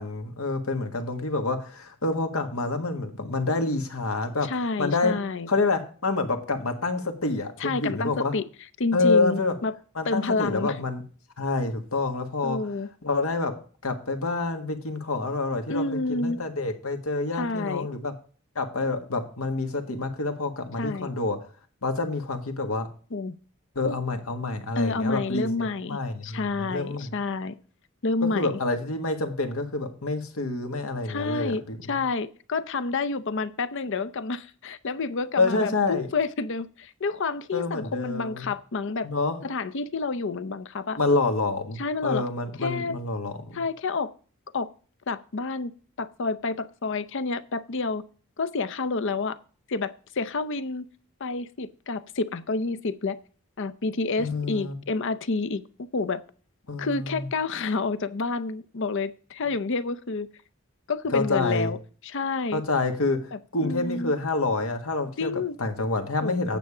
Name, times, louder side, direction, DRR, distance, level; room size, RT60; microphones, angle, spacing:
voice 1, 0.0-4.5 4.8-5.2 5.5-8.3 8.9-9.6 9.9-11.0 11.4-12.6 13.0-13.5 13.8-18.1 18.5-21.4 21.8-22.9 23.7-25.5 25.8-27.1 28.2-32.0 35.4-36.1 37.5-38.5 39.0-39.4 41.0-43.6 54.2-54.8 56.7-57.3 61.1-61.7 62.5-63.2 63.5-66.6, left 3 dB, 80° left, 6 dB, 1.6 m, -27 dB
voice 2, 4.4-5.5 7.6-8.4 8.8-9.7 10.0-10.8 12.4-12.9 15.7-16.4 17.4-17.9 20.8-21.1 23.1-23.4 23.9-24.0 24.8-27.5 28.0-28.6 31.0-31.6 31.9-39.1 39.4-41.0 41.8-42.2 42.6-43.0 43.5-44.1 44.5-44.7 45.1-45.7 46.0-48.0 48.4-49.4 49.7-50.8 51.2-53.2 53.6-55.6 55.9-56.2 56.8-60.3 60.9-61.8 62.0-62.6 63.3-64.1 65.2-65.6 66.2-66.6, left 3 dB, 60° left, 14 dB, 0.7 m, -29 dB
9.1 x 7.1 x 4.9 m, 0.40 s
head